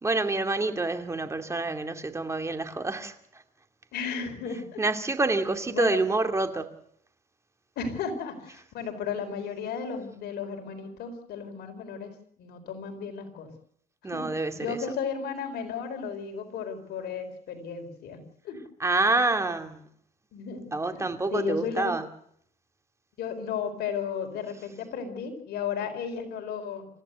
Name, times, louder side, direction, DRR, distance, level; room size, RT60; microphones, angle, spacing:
voice 1, 0.0-3.4 4.8-6.7 14.0-14.8 18.8-19.8 20.7-22.0, right 3 dB, 15° right, 2.4 m, -27 dB
voice 2, 3.9-4.8 5.7-6.0 7.8-13.5 14.1-14.3 14.5-18.6 20.3-22.0 23.2-26.9, left 6 dB, 75° left, 4.4 m, -34 dB
27.5 x 15.0 x 8.0 m
cardioid pair, 110°, 17 cm